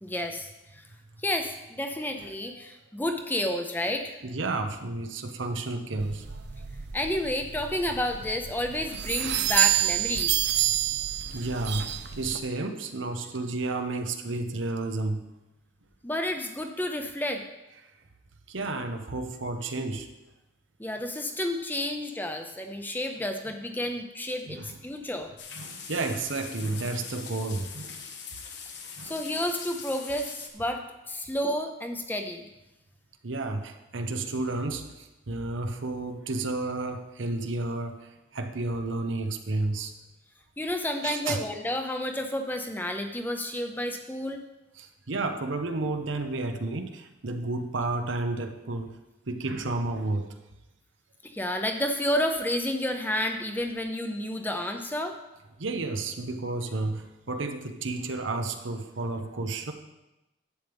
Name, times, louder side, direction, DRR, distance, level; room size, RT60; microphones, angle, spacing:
voice 1, 0.0-0.8 1.2-4.2 6.9-10.4 16.0-17.4 20.8-25.3 29.0-32.5 40.6-44.4 51.2-55.2, left 1 dB, 10° left, 5 dB, 0.6 m, -30 dB
voice 2, 4.2-6.5 11.3-15.2 18.5-20.1 24.5-24.7 25.6-28.0 29.0-29.1 33.2-39.9 41.0-41.4 44.8-48.9 49.3-50.3 55.6-59.7, right 2 dB, 85° right, 6 dB, 0.9 m, -31 dB
sound 1, 6.0-12.4, right 12 dB, 60° right, 0.5 m, -29 dB
sound 2, 25.4-30.5, left 6 dB, 70° left, 1.2 m, -42 dB
11.5 x 8.3 x 3.5 m, 0.99 s
head